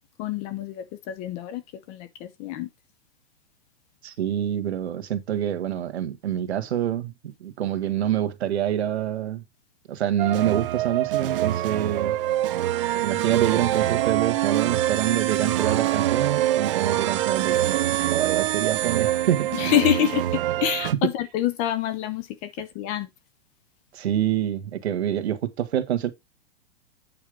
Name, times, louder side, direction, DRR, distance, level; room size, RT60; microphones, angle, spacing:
voice 1, 0.2-2.7 19.5-20.2 20.6-23.1, left 12 dB, 20° left, 0.6 m, -27 dB
voice 2, 4.0-7.1 7.4-9.4 9.9-12.2 12.9-17.8 18.1-19.5 23.9-26.1, right 10 dB, 75° right, 1.8 m, -26 dB
sound 1, 10.2-20.9, right 13 dB, 55° right, 0.9 m, -25 dB
sound 2, 12.2-19.9, right 13 dB, 30° right, 0.4 m, -31 dB
8.8 x 4.4 x 5.2 m
hypercardioid pair, 160°, 33 cm